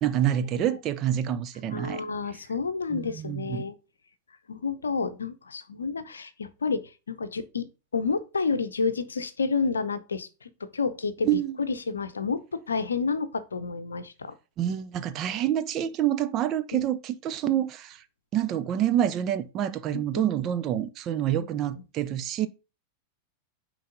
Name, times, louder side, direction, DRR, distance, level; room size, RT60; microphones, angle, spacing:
voice 1, 0.0-2.0 2.9-3.6 11.2-11.6 14.6-18.0 18.3-22.5, right 11 dB, 35° right, 0.6 m, -27 dB
voice 2, 1.7-3.8 4.5-6.8 7.1-11.3 11.6-14.3 16.7-16.8 17.4-17.6 19.9-20.3 21.3-21.5, left 4 dB, 75° left, 0.7 m, -30 dB
9.3 x 3.2 x 3.8 m
figure-of-eight pair, 90°, 0 cm